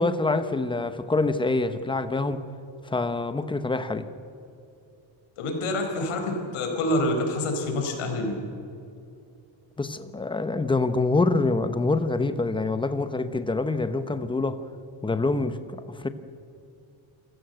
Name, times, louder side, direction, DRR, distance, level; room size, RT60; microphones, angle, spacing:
voice 1, 0.0-2.4 2.9-4.1 9.8-14.6 15.0-16.1, left 3 dB, 10° left, 0.9 m, -26 dB
voice 2, 5.4-8.3, left 1 dB, 80° left, 4.5 m, -27 dB
27.5 x 16.0 x 7.9 m
cardioid pair, 155°, 49 cm